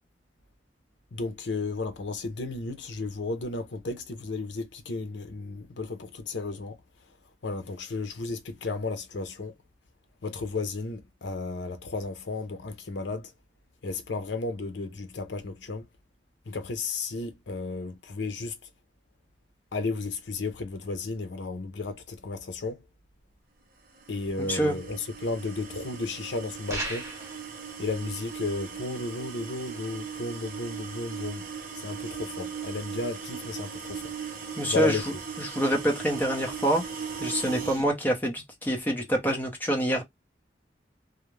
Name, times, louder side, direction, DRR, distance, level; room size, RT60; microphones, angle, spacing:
voice 1, 1.1-6.7 7.4-9.5 10.2-13.3 13.8-15.8 16.5-18.5 19.7-22.8 24.1-25.0 25.2-27.1 27.8-31.4 31.8-34.0 34.7-35.0, left 3 dB, 90° left, 0.6 m, -33 dB
sound 1, 24.0-37.9, right 6 dB, 50° right, 0.6 m, -39 dB
voice 2, 24.4-24.8 34.6-36.8 37.2-40.0, right 1 dB, 10° left, 0.6 m, -26 dB
sound 2, 26.7-27.4, right 1 dB, 15° right, 0.9 m, -34 dB
2.4 x 2.0 x 3.1 m
head